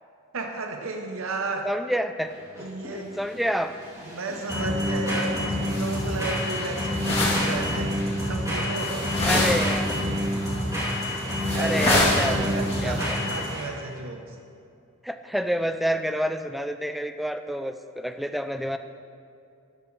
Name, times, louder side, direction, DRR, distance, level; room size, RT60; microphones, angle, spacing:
voice 1, 0.3-1.7 2.6-3.2 4.0-8.0 8.2-9.2 11.4-14.4, right 2 dB, 65° right, 4 dB, 0.8 m, -33 dB
voice 2, 1.6-2.3 2.9-3.7 9.2-9.9 11.6-13.0 15.0-18.8, equal, ahead, 8 dB, 0.4 m, -28 dB
sound 1, 2.2-13.9, equal, 15° right, 2.9 m, -28 dB
sound 2, 5.7-6.1 6.4-7.7 8.0-8.2 8.8-10.0 10.3-10.6 10.9-11.0 11.4-13.0, left 1 dB, 30° left, 2.6 m, -27 dB
13.0 x 11.5 x 3.2 m, 2.5 s
head